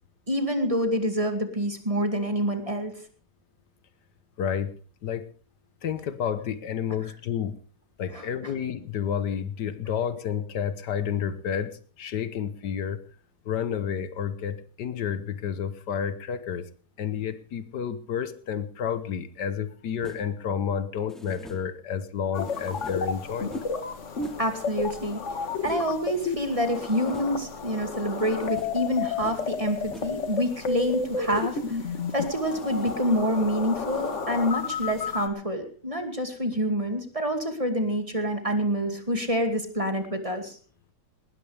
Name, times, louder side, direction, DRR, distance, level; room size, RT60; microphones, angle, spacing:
voice 1, 0.3-2.9 8.1-8.5 24.4-25.2 25.6-31.8 32.1-40.6, equal, 20° right, 5 dB, 2.5 m, -27 dB
voice 2, 4.4-4.7 5.0-5.3 5.8-7.6 8.0-13.0 13.4-16.7 17.0-23.5, left 8 dB, 80° left, 12 dB, 1.7 m, -30 dB
sound 1, 20.0-20.4 21.1-21.8 22.4-23.2 23.5-23.8 24.2-24.5 25.6-26.0 26.7-27.5 28.2-28.9 29.2-29.6 29.9-30.3 31.3-31.7 32.4-33.2 33.9-34.2, equal, ahead, 2.3 m, -45 dB
sound 2, 22.3-35.3, left 5 dB, 45° left, 1.7 m, -32 dB
19.5 x 19.5 x 3.4 m, 0.41 s
omnidirectional pair, 1.8 m